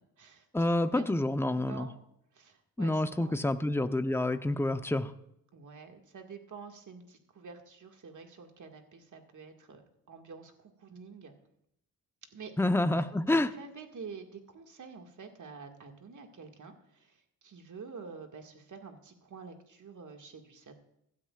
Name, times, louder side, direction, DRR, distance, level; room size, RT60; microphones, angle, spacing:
voice 1, 0.5-1.9 2.8-5.1 12.6-13.5, left 1 dB, 5° left, 9 dB, 0.9 m, -28 dB
voice 2, 1.5-2.0 2.3-3.4 5.5-11.3 12.3-12.5 12.9-20.7, right 5 dB, 50° right, 4 dB, 2.1 m, -48 dB
15.5 x 12.5 x 2.5 m, 0.77 s
supercardioid pair, 55°, 38 cm